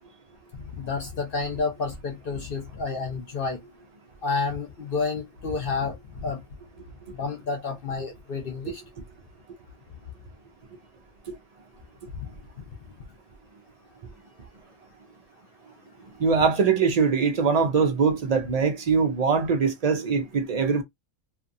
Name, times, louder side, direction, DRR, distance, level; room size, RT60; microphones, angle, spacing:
voice 1, 0.5-3.6 4.2-6.4 7.1-8.8, left 4 dB, 55° left, 0.8 m, -30 dB
voice 2, 16.2-20.8, right 5 dB, 60° right, 0.4 m, -22 dB
2.7 x 2.5 x 2.5 m
omnidirectional pair, 1.3 m